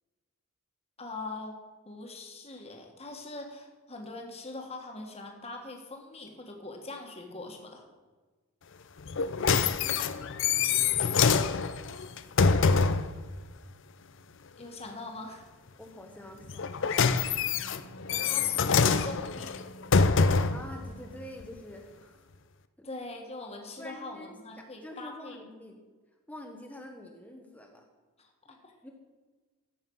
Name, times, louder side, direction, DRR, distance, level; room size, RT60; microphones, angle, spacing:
voice 1, 1.0-1.6 1.9-7.8 14.6-15.5 18.2-19.6 22.8-25.4 28.2-28.3 28.6-28.7, left 2 dB, 30° left, 2 dB, 1.7 m, -42 dB
sound 1, 9.1-13.1 16.5-20.7 21.4-21.5, left 5 dB, 55° left, 0.5 m, -25 dB
voice 2, 15.8-17.2 20.4-22.3 22.8-22.9 23.8-25.8 26.3-27.8 28.5-28.9, left 1 dB, 5° left, 2 dB, 1.0 m, -47 dB
Wind instrument woodwind instrument, 17.3-21.5, right 4 dB, 80° left, 1.5 m, -52 dB
14.5 x 7.9 x 5.5 m, 1.3 s
head